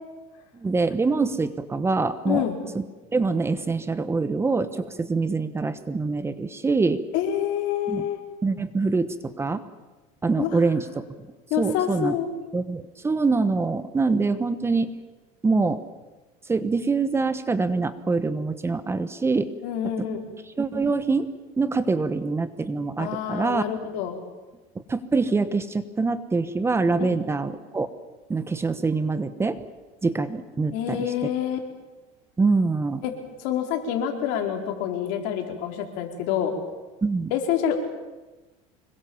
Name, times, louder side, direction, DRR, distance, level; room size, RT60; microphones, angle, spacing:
voice 1, 0.5-2.4 2.7-2.8 3.1-7.0 7.9-8.0 8.4-9.6 10.2-11.1 11.6-12.1 12.5-15.0 15.4-15.8 16.5-19.5 20.0-20.1 20.6-23.6 24.9-27.9 28.3-29.6 30.0-31.0 32.4-33.0 37.0-37.3, right 3 dB, 15° right, 12 dB, 1.2 m, -24 dB
voice 2, 2.2-2.6 7.1-8.2 10.4-10.6 11.5-12.3 19.6-20.2 23.0-24.2 27.0-27.2 30.7-31.6 33.0-33.1 33.4-36.5 37.3-37.8, left 9 dB, 70° left, 3 dB, 4.5 m, -27 dB
26.0 x 22.5 x 7.2 m, 1.2 s
supercardioid pair, 130°, 17 cm